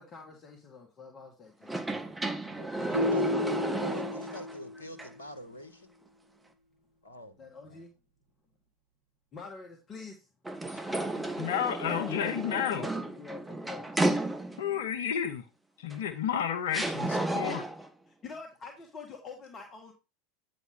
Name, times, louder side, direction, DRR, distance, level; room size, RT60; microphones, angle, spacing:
voice 1, 0.0-2.3 3.0-3.5 7.4-7.9 9.3-10.3 11.1-11.5 11.8-13.9 18.2-19.9, left 4 dB, 30° left, 1.9 m, -46 dB
sound 1, 1.6-4.6 5.0-5.1 10.4-14.8 15.9-16.0 16.7-17.9, right 2 dB, 10° right, 1.3 m, -33 dB
voice 2, 2.5-5.9 7.0-7.3, left 1 dB, 85° left, 1.4 m, -45 dB
sound 2, 2.9-5.1, left 1 dB, 70° right, 1.3 m, -32 dB
voice 3, 11.4-12.9 14.6-15.4 15.8-17.6, left 9 dB, 65° left, 1.0 m, -31 dB
9.5 x 5.0 x 3.8 m
figure-of-eight pair, 85°, 0 cm